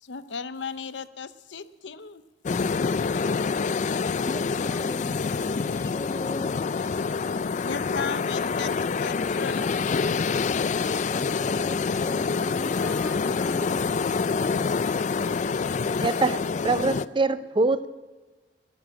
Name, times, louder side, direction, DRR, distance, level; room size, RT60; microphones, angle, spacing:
voice 1, 0.0-2.2 7.6-9.8, left 5 dB, 85° left, 13 dB, 0.7 m, -36 dB
beach waves come up light wind noise, 2.5-17.1, left 5 dB, 40° left, 0.4 m, -26 dB
voice 2, 4.2-6.7 11.1-14.0, left 1 dB, 15° left, 11 dB, 0.7 m, -40 dB
voice 3, 16.0-17.9, right 3 dB, 25° right, 13 dB, 0.6 m, -24 dB
13.5 x 11.0 x 8.8 m, 1.3 s
head